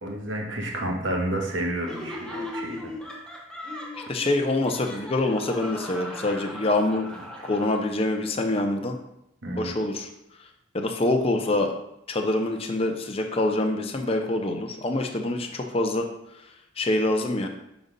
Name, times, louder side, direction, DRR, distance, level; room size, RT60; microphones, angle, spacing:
voice 1, 0.0-2.9 9.4-9.7, right 1 dB, 65° right, 1 dB, 1.3 m, -30 dB
Laughter, 1.8-8.2, left 1 dB, 5° left, 0.9 m, -38 dB
voice 2, 4.1-7.1 7.4-9.0 9.6-10.1 10.7-11.7 12.1-16.1 16.8-17.5, left 2 dB, 30° left, 3 dB, 0.6 m, -25 dB
6.0 x 4.0 x 5.3 m, 0.85 s
head